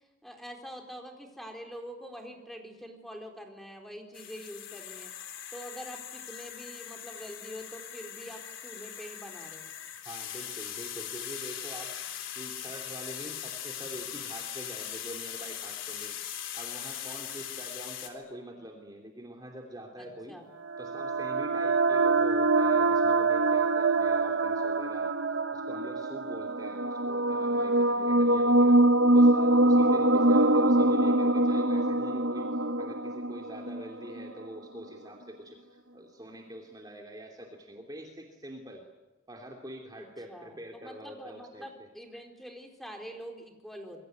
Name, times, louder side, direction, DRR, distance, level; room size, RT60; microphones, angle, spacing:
voice 1, 0.2-5.1 5.5-9.7 20.0-20.4 30.2-30.6 40.0-44.0, equal, ahead, 2 dB, 4.2 m, -45 dB
sound 1, 4.1-18.1, left 10 dB, 85° left, 3.7 m, -40 dB
voice 2, 10.0-11.9 12.3-16.1 16.5-20.4 20.8-25.1 25.5-28.8 29.1-38.8 39.3-41.9, equal, 20° right, 1 dB, 2.9 m, -45 dB
sound 2, 20.7-34.3, right 2 dB, 70° right, 1.0 m, -24 dB
26.5 x 22.5 x 9.4 m, 1.1 s
head